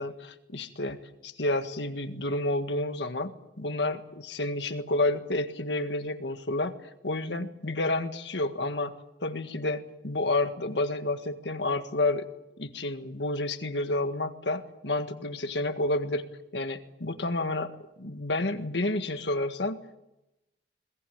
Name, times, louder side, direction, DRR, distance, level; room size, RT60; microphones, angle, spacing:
voice 1, 0.0-6.7 7.0-8.9 9.2-12.3 12.6-16.2 16.5-17.7 18.0-20.0, left 2 dB, 70° left, 8 dB, 1.8 m, -30 dB
21.0 x 21.0 x 8.8 m, 0.92 s
head